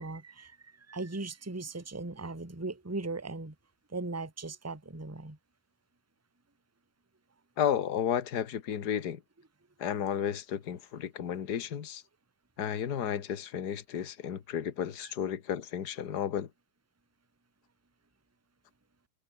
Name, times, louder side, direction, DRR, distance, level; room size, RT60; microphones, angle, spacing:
voice 1, 0.0-3.6 3.9-5.4 15.0-15.1, right 3 dB, 5° right, 1.9 m, -38 dB
voice 2, 7.6-9.2 9.8-12.0 12.6-16.5, left 9 dB, 40° left, 1.6 m, -32 dB
omnidirectional pair, 3.4 m